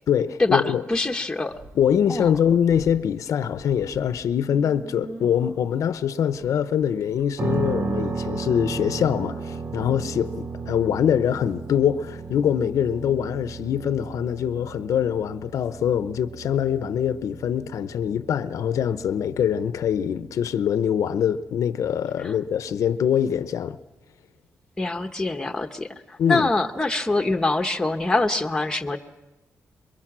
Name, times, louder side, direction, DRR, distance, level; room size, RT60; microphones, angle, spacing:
voice 1, 0.1-0.8 1.7-23.8 26.2-26.5, left 8 dB, 80° left, 0.8 m, -24 dB
voice 2, 0.9-1.5 2.1-2.4 22.2-22.3 24.8-29.0, left 2 dB, 10° left, 1.1 m, -24 dB
sound 1, 1.3-2.9 3.3-7.6, right 2 dB, 60° right, 7.9 m, -45 dB
sound 2, 7.4-23.2, right 4 dB, 40° right, 0.8 m, -35 dB
27.5 x 22.5 x 6.2 m
cardioid pair, 120°, 5 cm